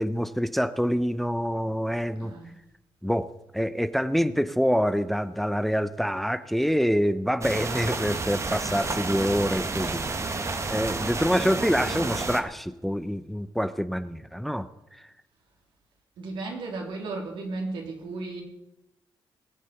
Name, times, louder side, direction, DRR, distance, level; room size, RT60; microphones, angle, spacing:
voice 1, 0.0-2.3 3.0-3.3 3.5-10.1 10.7-14.7 14.9-15.1, equal, ahead, 0.7 m, -26 dB
voice 2, 2.2-2.5 11.4-12.2 16.2-18.4, right 3 dB, 80° right, 3.6 m, -35 dB
sound 1, 7.4-12.4, right 3 dB, 35° right, 1.5 m, -30 dB
19.0 x 7.4 x 7.1 m
cardioid pair, 75°, 8 cm